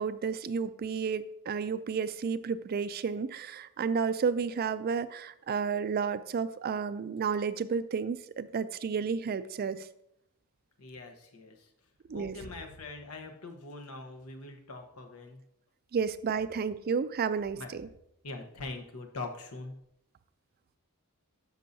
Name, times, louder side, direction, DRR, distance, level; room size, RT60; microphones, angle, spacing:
voice 1, 0.0-9.9 12.1-12.3 15.9-17.9, right 6 dB, 45° right, 14 dB, 0.4 m, -31 dB
voice 2, 10.8-11.7 12.1-15.4 17.6-17.7 18.2-19.7, left 3 dB, 75° left, 4 dB, 1.0 m, -42 dB
13.0 x 5.4 x 2.7 m, 0.79 s
head